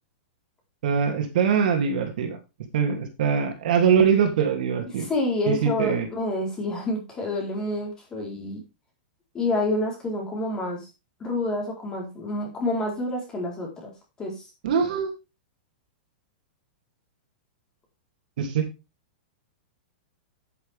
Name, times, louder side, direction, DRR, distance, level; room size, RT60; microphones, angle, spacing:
voice 1, 0.8-2.4 2.7-5.1 5.5-6.1 14.6-15.1 18.4-18.7, right 7 dB, 55° right, 4 dB, 2.9 m, -23 dB
voice 2, 5.1-8.6 9.3-10.9 11.2-13.9 14.2-14.4, left 1 dB, 15° left, 0 dB, 4.3 m, -28 dB
10.0 x 9.5 x 3.6 m, 0.27 s
supercardioid pair, 170°, 5 cm